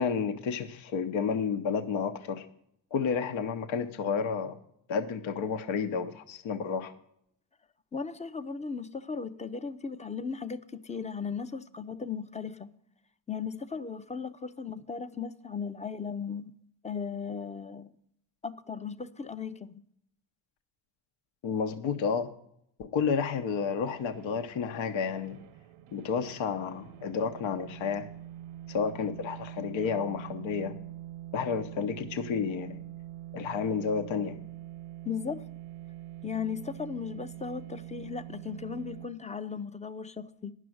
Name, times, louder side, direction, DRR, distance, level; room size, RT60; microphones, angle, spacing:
voice 1, 0.0-2.5 2.9-4.6 4.9-6.9 21.4-22.3 22.8-25.4 25.9-28.1 28.7-30.7 31.3-32.8 33.3-34.4, left 6 dB, 75° left, 1.0 m, -31 dB
voice 2, 7.9-12.7 13.3-16.5 16.8-17.9 18.4-19.8 35.0-35.4 36.2-40.5, left 6 dB, 15° left, 0.5 m, -37 dB
sound 1, 23.7-39.1, right 14 dB, 90° right, 0.7 m, -45 dB
10.0 x 6.3 x 7.8 m
cardioid pair, 85°, 47 cm